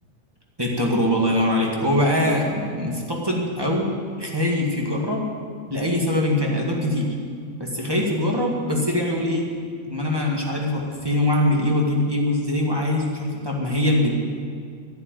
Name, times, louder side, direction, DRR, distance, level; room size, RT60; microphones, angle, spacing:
voice 1, 0.6-5.2 5.7-7.1 7.6-9.5 9.9-14.1, left 1 dB, 15° right, -2 dB, 1.1 m, -22 dB
11.5 x 10.5 x 9.1 m, 2.2 s
omnidirectional pair, 3.6 m